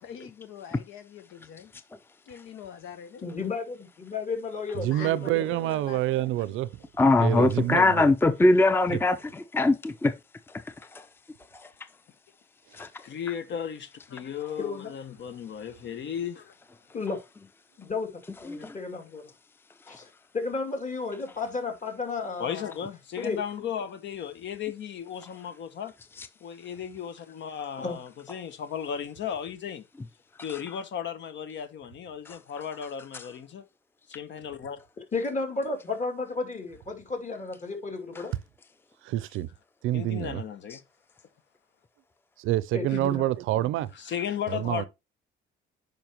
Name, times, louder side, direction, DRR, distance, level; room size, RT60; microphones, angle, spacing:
voice 1, 0.0-1.7 2.2-3.2 4.8-6.3, left 7 dB, 90° left, 1.2 m, -44 dB
voice 2, 3.2-5.7 14.6-14.9 16.9-17.2 17.8-19.3 19.9-20.1 20.3-22.7 23.2-23.4 27.8-28.0 35.1-38.3 42.7-43.3, left 4 dB, 40° left, 2.7 m, -33 dB
voice 3, 4.7-6.7 7.2-8.1 8.9-9.0 39.0-39.5 39.8-40.4 42.4-43.9 44.5-44.8, right 14 dB, 90° right, 0.5 m, -27 dB
voice 4, 7.0-10.1 12.7-12.9 18.5-18.7 19.9-20.0, left 2 dB, 10° left, 0.5 m, -22 dB
voice 5, 13.0-16.5 22.4-25.9 26.4-29.9 30.4-33.6 34.1-34.8 39.9-40.8 42.9-43.0 43.9-44.9, left 8 dB, 65° left, 1.0 m, -35 dB
8.9 x 5.4 x 3.0 m
cardioid pair, 90°, 20 cm